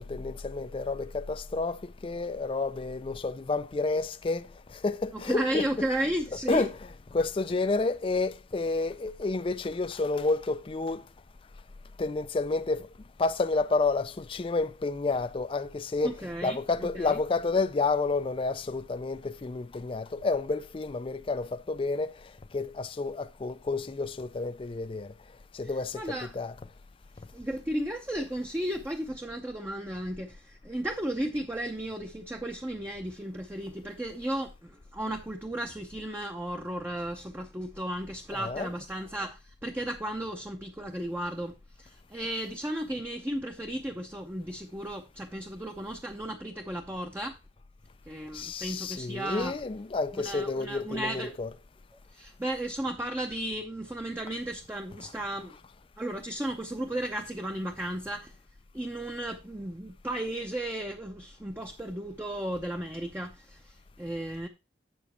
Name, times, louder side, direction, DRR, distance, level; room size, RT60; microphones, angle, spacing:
voice 1, 0.0-5.9 6.5-6.8 7.1-11.0 12.0-12.9 13.2-16.2 16.4-22.1 22.5-25.1 25.5-26.5 38.3-38.7 48.3-51.5, left 3 dB, 30° left, 0.4 m, -30 dB
voice 2, 5.1-6.7 16.0-17.2 25.9-26.3 27.3-47.4 48.1-49.5 50.1-51.4 52.1-55.6 56.0-58.3 58.7-64.5, right 1 dB, 10° right, 0.7 m, -34 dB
8.2 x 7.2 x 4.3 m
head